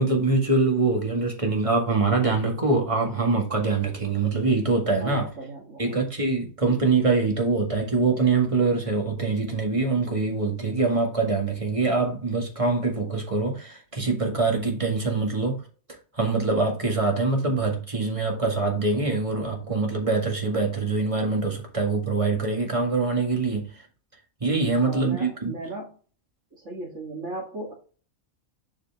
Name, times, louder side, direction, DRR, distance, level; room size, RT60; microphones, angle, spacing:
voice 1, 0.0-5.3 5.8-15.6 16.1-23.7 24.4-25.5, right 3 dB, 25° right, 1.9 m, -24 dB
voice 2, 5.0-6.0 6.6-7.1 24.7-26.0 26.5-27.7, right 2 dB, 55° right, 2.2 m, -37 dB
7.6 x 4.9 x 3.5 m
omnidirectional pair, 1.5 m